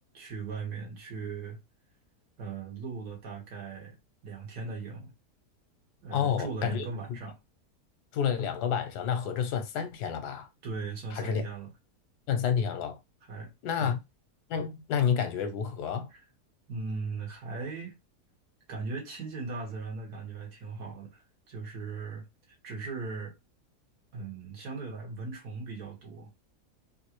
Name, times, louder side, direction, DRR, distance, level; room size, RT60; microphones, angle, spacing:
voice 1, 0.1-1.6 2.4-4.0 4.2-5.1 6.0-7.4 10.6-11.7 13.2-14.0 16.1-16.2 16.7-17.9 18.7-23.3 24.1-26.3, right 4 dB, 70° right, 1.9 m, -38 dB
voice 2, 6.1-6.9 8.1-10.5 11.2-11.4 12.3-13.0 13.6-14.0 14.5-16.1, left 7 dB, 90° left, 1.3 m, -29 dB
3.9 x 2.5 x 2.9 m
omnidirectional pair, 1.7 m